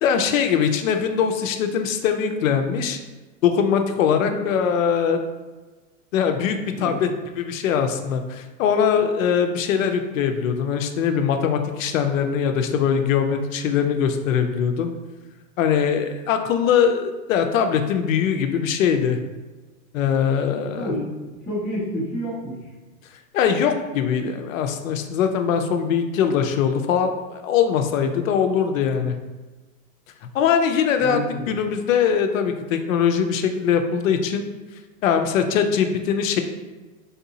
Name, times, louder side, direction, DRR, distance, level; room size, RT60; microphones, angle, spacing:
voice 1, 0.0-3.0 3.4-5.2 6.1-7.1 7.4-14.9 15.6-19.2 19.9-20.9 23.3-29.1 30.3-31.2 31.5-34.5 35.0-36.4, left 7 dB, 75° left, 6 dB, 0.5 m, -21 dB
voice 2, 4.1-4.4 6.8-7.0 20.7-21.0 21.4-22.7 31.0-31.5, equal, ahead, -12 dB, 0.4 m, -29 dB
3.6 x 2.7 x 2.7 m, 1.2 s
supercardioid pair, 150°, 41 cm